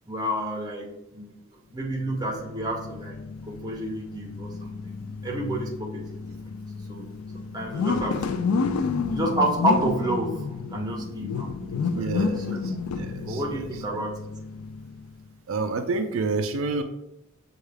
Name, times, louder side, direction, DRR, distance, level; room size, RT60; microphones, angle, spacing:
voice 1, 0.1-1.3 1.7-3.2 3.5-5.0 5.2-6.3 6.9-7.0 7.5-8.4 9.1-12.6 13.2-14.2, right 1 dB, 20° right, -1 dB, 0.6 m, -30 dB
sound 1, 1.8-15.2, left 4 dB, 75° left, 0.3 m, -31 dB
voice 2, 11.9-13.6 15.5-16.8, right 3 dB, 70° right, 6 dB, 0.4 m, -29 dB
6.3 x 2.4 x 3.3 m, 0.86 s
head